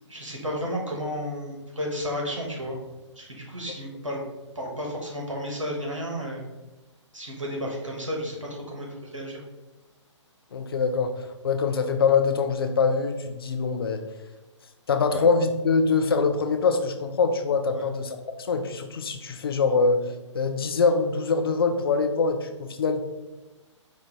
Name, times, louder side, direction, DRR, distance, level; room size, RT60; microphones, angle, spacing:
voice 1, 0.1-2.8 3.2-4.2 4.5-6.4 7.1-9.4 15.1-15.2 17.7-17.9, equal, 80° right, -1 dB, 1.2 m, -32 dB
voice 2, 10.5-14.0 14.9-18.2 18.5-20.0 20.3-23.0, left 4 dB, 50° left, 7 dB, 0.5 m, -24 dB
5.1 x 2.5 x 3.6 m, 1.1 s
figure-of-eight pair, 130°, 16 cm